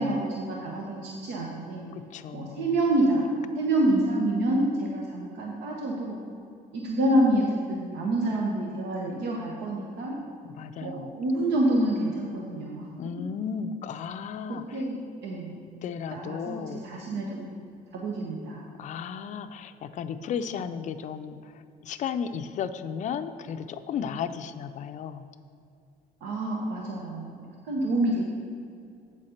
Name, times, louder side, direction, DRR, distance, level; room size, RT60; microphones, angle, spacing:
voice 1, 0.0-1.8 2.3-3.3 3.5-6.2 6.7-10.2 10.8-12.9 14.5-15.6 16.1-17.6 17.9-18.6 26.2-27.4 27.7-28.3, right 1 dB, 80° right, -2 dB, 1.1 m, -27 dB
voice 2, 1.9-2.7 10.4-11.1 13.0-14.8 15.8-16.8 18.8-25.3, left 7 dB, 45° left, 9 dB, 0.4 m, -34 dB
8.3 x 4.3 x 6.4 m, 2.4 s
cardioid pair, 110°, 17 cm